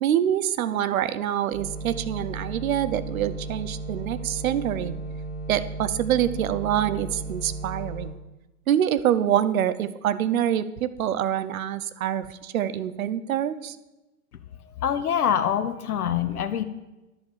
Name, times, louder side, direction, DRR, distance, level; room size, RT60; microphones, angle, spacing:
voice 1, 0.0-4.9 5.5-8.1 8.7-13.8, right 10 dB, 65° right, 14 dB, 0.9 m, -25 dB
sound 1, 1.5-8.1, right 2 dB, 25° right, 3.4 m, -35 dB
voice 2, 14.8-16.6, left 9 dB, 80° left, 9 dB, 0.9 m, -25 dB
11.0 x 7.1 x 7.6 m, 1.0 s
hypercardioid pair, 105°, 44 cm